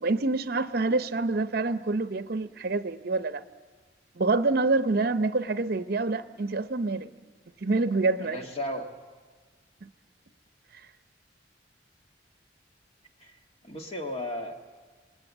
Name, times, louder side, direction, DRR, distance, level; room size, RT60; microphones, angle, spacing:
voice 1, 0.0-3.4 4.2-7.1 7.6-8.5 9.8-9.9, right 3 dB, 55° right, 0.7 m, -27 dB
voice 2, 8.2-8.9 13.2-13.4 13.6-14.5, left 1 dB, 35° left, 1.6 m, -34 dB
27.0 x 19.5 x 7.3 m
head